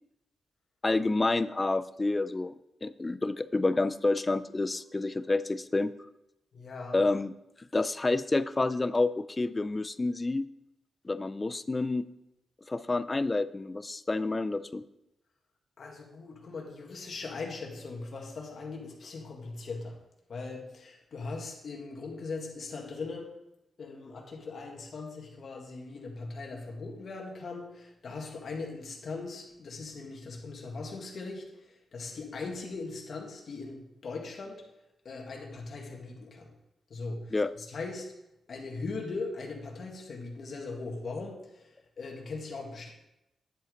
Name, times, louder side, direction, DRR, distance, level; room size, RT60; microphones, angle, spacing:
voice 1, 0.8-2.5 2.8-5.9 6.9-7.3 7.7-10.4 11.0-12.1 12.7-14.8 37.3-37.5, left 2 dB, 20° left, 14 dB, 0.3 m, -28 dB
voice 2, 6.5-7.0 15.8-20.0 20.3-23.3 23.8-31.5 31.9-34.6 35.1-36.5 36.9-38.1 38.5-41.7 42.0-42.9, left 3 dB, 45° left, 0 dB, 1.9 m, -39 dB
10.5 x 7.9 x 3.9 m, 0.88 s
wide cardioid pair, 175°, 0 cm